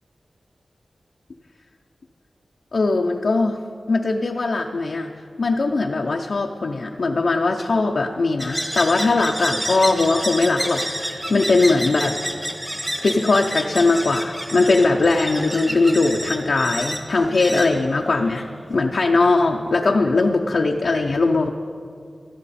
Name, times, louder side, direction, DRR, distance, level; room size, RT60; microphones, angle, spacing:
voice 1, 2.7-3.6 3.9-5.1 5.4-12.2 13.0-21.5, left 3 dB, 70° left, 1 dB, 0.6 m, -20 dB
sound 1, 8.4-18.6, equal, 10° right, 1.1 m, -30 dB
15.5 x 12.0 x 4.2 m, 2.3 s
cardioid pair, 60°, 0 cm